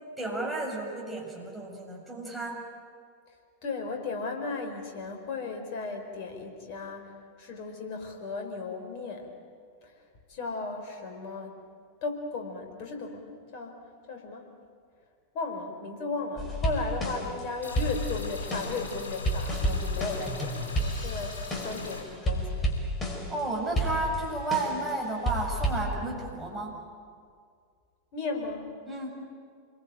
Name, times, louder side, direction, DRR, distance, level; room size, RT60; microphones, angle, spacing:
voice 1, 0.2-2.6 23.3-26.8 28.9-29.1, right 2 dB, 5° right, -3 dB, 7.1 m, -32 dB
voice 2, 3.6-9.3 9.8-9.9 10.3-11.6 12.0-13.8 14.1-14.5 15.3-22.8 28.1-28.6, left 3 dB, 45° left, 3 dB, 4.8 m, -35 dB
sound 1, 16.4-17.4 17.8-21.9 22.3-23.4 23.8-24.9 25.3-25.8, right 1 dB, 20° left, 4.9 m, -31 dB
sound 2, 17.6-22.0, left 3 dB, 70° left, 5.6 m, -39 dB
27.5 x 22.0 x 9.0 m, 2.1 s
figure-of-eight pair, 90°, 0 cm